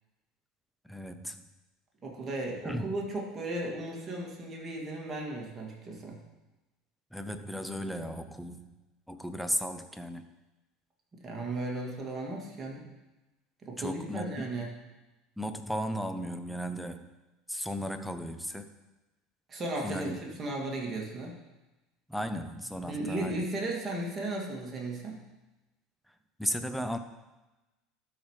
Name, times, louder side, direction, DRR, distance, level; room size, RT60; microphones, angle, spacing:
voice 1, 0.8-1.4 2.6-2.9 7.1-8.7 9.1-10.3 13.8-14.5 15.4-17.1 17.5-18.7 19.8-20.4 22.1-23.4 26.4-27.0, equal, ahead, 9 dB, 0.7 m, -35 dB
voice 2, 2.0-6.2 11.2-12.8 13.7-14.7 19.5-20.1 20.4-21.4 22.9-25.2, right 2 dB, 30° right, -2 dB, 2.3 m, -35 dB
12.5 x 5.0 x 3.2 m, 1.1 s
hypercardioid pair, 75°, 0 cm